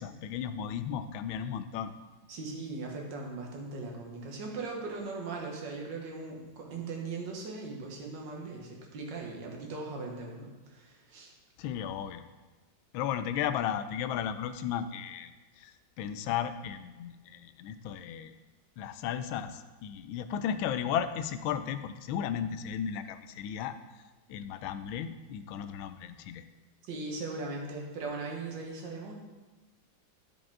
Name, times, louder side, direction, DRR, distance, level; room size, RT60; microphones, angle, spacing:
voice 1, 0.0-1.9 11.6-12.2 12.9-18.3 18.8-23.8 24.3-26.4, left 9 dB, 85° left, 11 dB, 1.4 m, -35 dB
voice 2, 2.3-11.3 26.9-29.1, right 3 dB, 65° right, 0 dB, 1.9 m, -39 dB
12.0 x 5.0 x 3.6 m, 1.2 s
omnidirectional pair, 2.2 m